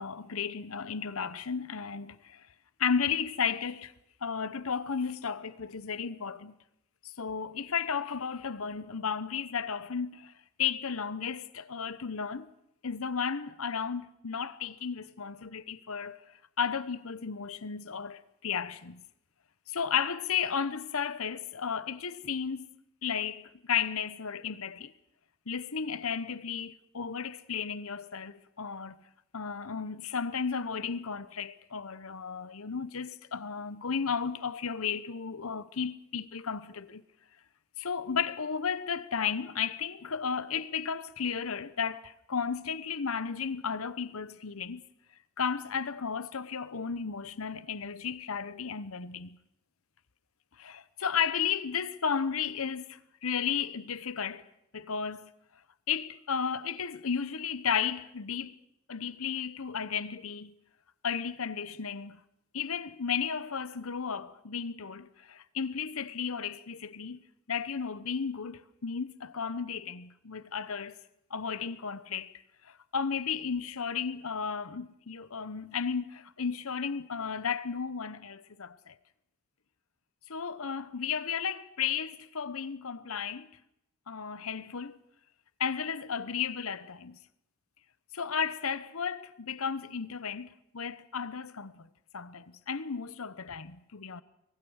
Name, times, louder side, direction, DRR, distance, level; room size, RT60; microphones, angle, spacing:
voice 1, 0.0-2.4 2.8-3.9 4.2-6.5 7.0-10.3 10.6-12.5 12.8-16.2 16.6-19.0 19.7-22.7 23.0-24.9 25.5-29.0 29.3-37.0 37.8-44.8 45.4-49.4 50.6-54.5 54.7-55.3 55.9-58.6 58.9-60.5 61.0-62.2 62.5-67.2 67.5-71.0 71.3-72.3 72.6-78.9 80.3-83.5 84.1-85.0 85.6-87.2 88.1-91.9 92.1-94.2, left 6 dB, 70° left, 0.9 m, -34 dB
24.0 x 21.5 x 6.4 m
head